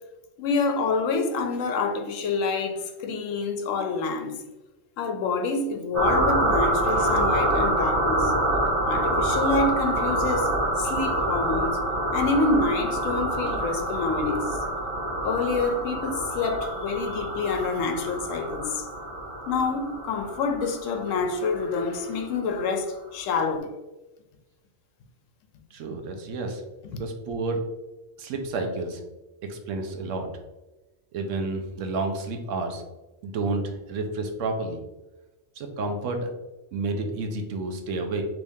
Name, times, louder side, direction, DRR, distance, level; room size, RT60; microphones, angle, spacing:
voice 1, 0.4-4.4 5.0-8.3 8.8-10.5 10.8-11.8 12.1-14.6 15.2-18.9 19.5-23.7, left 4 dB, 80° left, 0.9 m, -27 dB
sound 1, 5.9-22.2, right 1 dB, 50° right, 0.9 m, -26 dB
voice 2, 25.7-26.6 26.9-27.7 28.2-29.0 29.5-30.3 31.1-32.8 33.2-34.8 35.6-36.3 36.7-38.2, right 3 dB, 75° right, 0.9 m, -30 dB
3.5 x 3.0 x 2.6 m
omnidirectional pair, 1.3 m